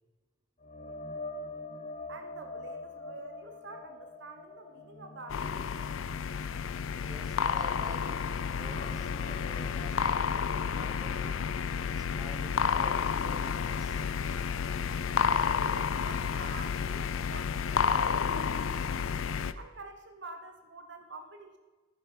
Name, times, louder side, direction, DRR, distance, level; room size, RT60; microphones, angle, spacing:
sound 1, 0.6-8.0 8.4-12.2 12.6-12.8 16.2-16.3, left 2 dB, 35° left, 0.7 m, -45 dB
voice 1, 2.1-5.7 15.4-19.1 19.5-21.6, right 3 dB, 55° right, 7 dB, 0.9 m, -48 dB
sound 2, 5.3-19.5, left 6 dB, 70° left, 0.5 m, -31 dB
voice 2, 7.1-11.4 11.9-14.0, right 1 dB, 20° right, 8 dB, 0.8 m, -50 dB
11.0 x 9.2 x 5.1 m, 1.3 s
head